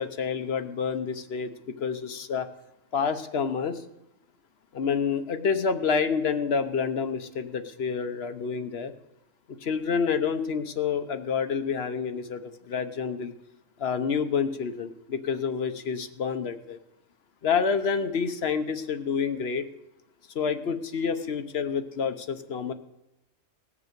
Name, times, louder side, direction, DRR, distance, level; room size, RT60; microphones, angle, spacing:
voice 1, 0.0-2.5 2.9-3.8 4.7-8.9 9.5-13.3 13.8-16.8 17.4-19.6 20.3-22.7, left 6 dB, 55° left, 10 dB, 1.0 m, -28 dB
18.0 x 7.0 x 6.6 m, 0.94 s
omnidirectional pair, 1.3 m